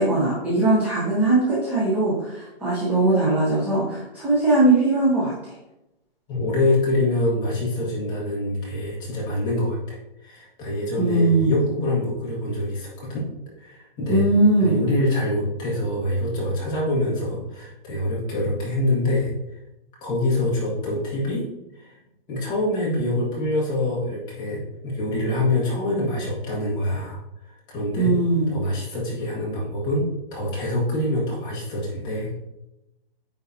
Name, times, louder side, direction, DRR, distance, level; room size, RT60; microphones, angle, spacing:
voice 1, 0.0-5.5 11.0-11.6 14.1-14.8 28.0-28.5, right 2 dB, 5° right, -9 dB, 0.7 m, -20 dB
voice 2, 6.3-13.2 13.6-14.3 14.6-19.3 20.0-21.4 21.7-21.9 22.3-27.2 27.7-28.1 28.5-32.5, left 1 dB, 15° left, -5 dB, 1.5 m, -25 dB
9.1 x 3.9 x 2.7 m, 0.91 s
hypercardioid pair, 165°, 30 cm